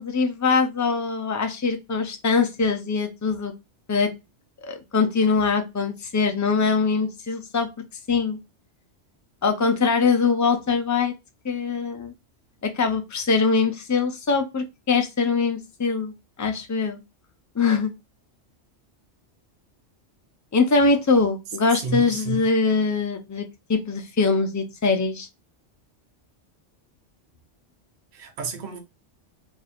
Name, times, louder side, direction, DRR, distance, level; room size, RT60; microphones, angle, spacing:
voice 1, 0.0-3.5 3.9-4.1 4.6-7.7 8.1-8.4 9.4-11.1 11.4-12.1 12.6-16.1 16.4-17.0 17.6-17.9 20.5-25.3, left 4 dB, 30° left, 0.3 m, -22 dB
voice 2, 21.7-22.5 28.1-28.8, right 3 dB, 45° right, 0.8 m, -31 dB
2.7 x 2.4 x 4.2 m
omnidirectional pair, 1.2 m